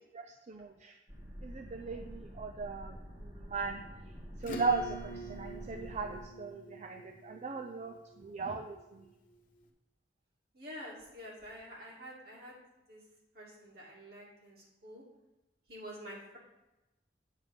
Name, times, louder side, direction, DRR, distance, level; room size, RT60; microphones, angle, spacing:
voice 1, 0.1-0.9 1.4-3.8 4.4-9.1, right 4 dB, 40° right, 5 dB, 0.4 m, -38 dB
sound 1, 1.1-6.2, equal, 25° right, 1.4 m, -48 dB
Acoustic guitar / Strum, 4.4-9.3, right 2 dB, 50° left, 0.8 m, -46 dB
voice 2, 10.5-12.6 12.9-13.0 13.3-15.0 15.7-16.4, equal, 60° right, -4 dB, 2.3 m, -48 dB
8.2 x 3.4 x 6.4 m, 1.0 s
head